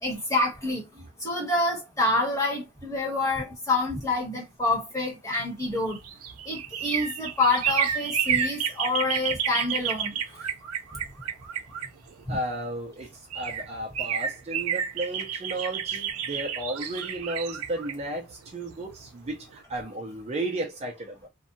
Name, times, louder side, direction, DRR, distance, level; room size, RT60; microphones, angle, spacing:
voice 1, 0.0-6.0 6.4-10.2 12.3-12.4, left 2 dB, 15° left, 1.2 m, -27 dB
sound 1, 5.6-12.4 13.0-13.1 13.3-19.1 19.4-19.5, right 8 dB, 80° right, 0.5 m, -30 dB
voice 2, 12.3-21.3, right 1 dB, 30° right, 0.6 m, -34 dB
2.7 x 2.3 x 2.6 m
head